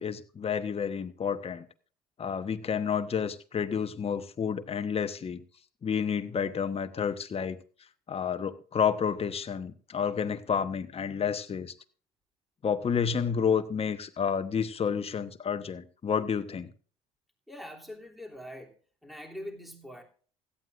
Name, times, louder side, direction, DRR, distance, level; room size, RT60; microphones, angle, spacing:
voice 1, 0.0-1.7 2.2-5.4 5.8-7.6 8.1-11.7 12.6-16.7, left 7 dB, 30° left, 1.1 m, -30 dB
voice 2, 17.5-18.7 19.0-20.0, equal, ahead, 3.0 m, -43 dB
16.5 x 13.0 x 2.5 m
hypercardioid pair, 60°, 19 cm